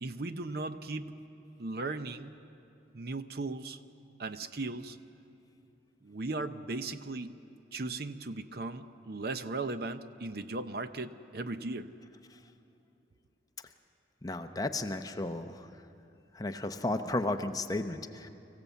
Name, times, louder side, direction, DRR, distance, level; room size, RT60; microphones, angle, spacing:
voice 1, 0.0-1.1 1.6-2.3 2.9-3.8 4.2-5.0 6.0-7.4 7.7-11.9, right 3 dB, 55° right, 11 dB, 0.7 m, -37 dB
voice 2, 14.2-15.8 16.3-18.3, left 2 dB, 20° left, 7 dB, 0.7 m, -34 dB
24.5 x 15.5 x 8.2 m, 2.7 s
head